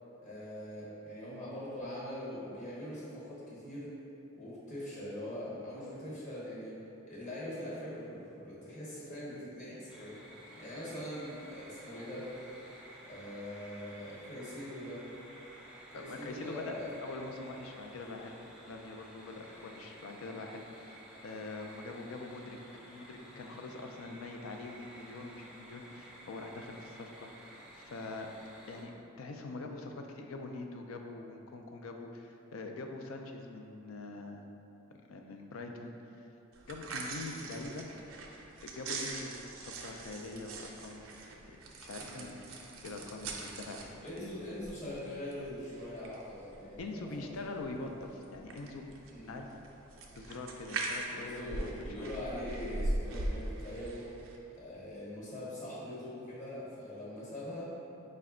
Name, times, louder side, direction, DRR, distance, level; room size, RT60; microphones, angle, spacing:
voice 1, 0.2-3.9 4.4-6.8 7.1-10.2 10.6-12.3 13.1-15.0 15.9-17.2 19.5-19.7 37.4-37.5 42.0-42.3 44.0-47.1 47.4-47.5 49.1-49.3 51.1-54.1 54.5-57.7, left 1 dB, 35° left, -8 dB, 1.1 m, -42 dB
sound 1, 9.9-28.8, right 1 dB, 5° right, 0.4 m, -53 dB
voice 2, 15.9-16.7 17.0-18.4 18.7-28.3 28.7-28.9 29.2-34.4 35.1-36.3 36.7-37.9 38.6-41.0 41.5-42.4 42.8-44.3 46.8-48.9 49.3-49.5 50.0-51.7 52.0-52.1, left 3 dB, 75° left, 3 dB, 0.4 m, -44 dB
sound 2, 36.5-54.4, right 2 dB, 70° right, 0.4 m, -42 dB
5.0 x 2.2 x 3.6 m, 2.9 s
head